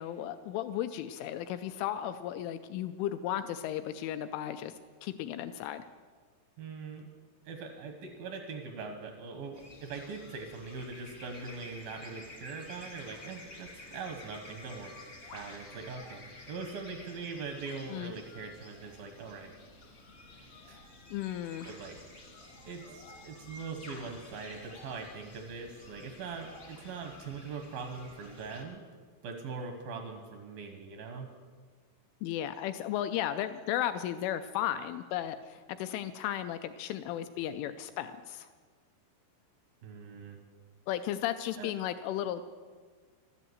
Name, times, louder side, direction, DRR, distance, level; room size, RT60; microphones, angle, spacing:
voice 1, 0.0-4.7 5.0-5.9 17.9-18.1 21.1-21.7 32.2-38.5 40.9-42.4, left 11 dB, 85° left, 10 dB, 2.8 m, -35 dB
voice 2, 6.6-7.1 7.5-19.5 20.7-20.8 21.6-22.0 22.7-28.9 29.2-31.3 39.8-40.4 41.6-41.7, right 4 dB, 80° right, 4 dB, 2.1 m, -42 dB
sound 1, 9.5-28.6, left 2 dB, 50° left, 0.9 m, -51 dB
13.5 x 12.5 x 7.9 m, 1.5 s
omnidirectional pair, 6.0 m